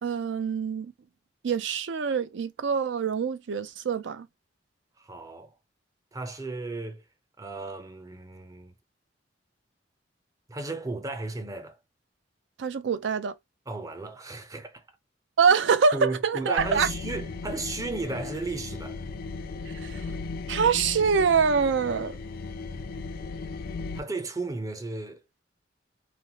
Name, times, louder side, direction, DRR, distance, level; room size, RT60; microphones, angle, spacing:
voice 1, 0.0-0.9 1.4-4.3 12.6-13.3 15.4-16.9 19.7-20.0 20.5-22.2, right 6 dB, 75° right, 0.4 m, -25 dB
voice 2, 5.0-5.6 6.1-7.0 7.4-8.7 10.5-11.8 13.7-14.8 15.9-19.0 24.0-25.2, right 3 dB, 20° right, 0.5 m, -34 dB
sound 1, 16.6-24.0, left 4 dB, 55° left, 0.3 m, -36 dB
3.1 x 2.0 x 2.7 m
head